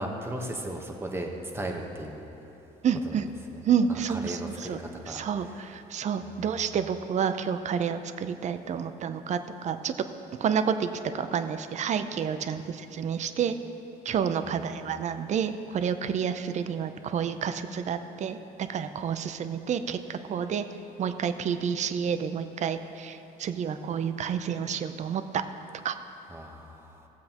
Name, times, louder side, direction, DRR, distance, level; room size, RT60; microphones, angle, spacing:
voice 1, 0.0-2.3 3.0-3.6 3.9-5.6 6.2-6.5 14.4-14.8 26.3-27.1, right 1 dB, 15° right, 2 dB, 1.1 m, -37 dB
voice 2, 2.8-3.3 3.6-4.8 5.1-9.9 10.4-13.6 14.0-20.6 21.0-25.4 25.8-26.0, right 7 dB, 45° right, 10 dB, 0.5 m, -29 dB
17.0 x 7.5 x 2.9 m, 3.0 s
cardioid pair, 110°, 17 cm